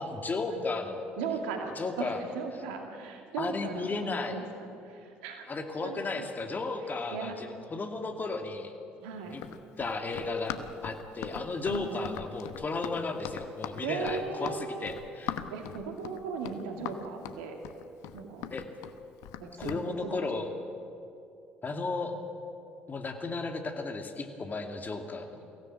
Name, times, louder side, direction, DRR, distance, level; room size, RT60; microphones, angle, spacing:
voice 1, 0.0-1.0 1.8-2.2 3.4-4.4 5.5-8.7 9.3-9.4 9.8-10.6 10.8-15.4 18.5-18.6 19.6-20.5 21.6-22.2 22.9-25.4, left 3 dB, 35° left, 4 dB, 2.6 m, -34 dB
voice 2, 1.2-5.5 5.8-6.3 7.1-7.4 9.0-9.4 11.7-12.0 13.8-14.9 15.5-17.6 18.1-18.5 19.4-20.3, right 5 dB, 75° right, 3 dB, 2.4 m, -37 dB
Run, 9.3-19.9, left 10 dB, 70° left, 1.0 m, -41 dB
23.0 x 16.5 x 8.9 m, 2.6 s
hypercardioid pair, 55°, 6 cm